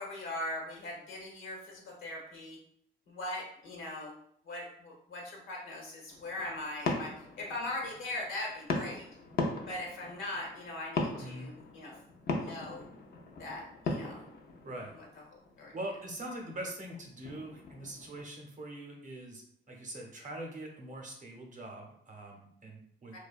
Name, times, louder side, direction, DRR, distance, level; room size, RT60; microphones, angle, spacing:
voice 1, 0.0-2.6 3.1-4.1 4.4-9.0 9.7-11.9 12.3-12.8 13.4-14.3 14.9-15.1 15.3-15.7 23.1-23.2, left 1 dB, 80° left, -2 dB, 1.0 m, -40 dB
sound 1, 6.1-18.2, left 3 dB, 50° left, 0.5 m, -39 dB
voice 2, 11.2-11.5 14.6-14.9 15.7-23.2, right 1 dB, 40° right, 0 dB, 0.7 m, -43 dB
2.7 x 2.2 x 2.4 m, 0.67 s
cardioid pair, 90°, 20 cm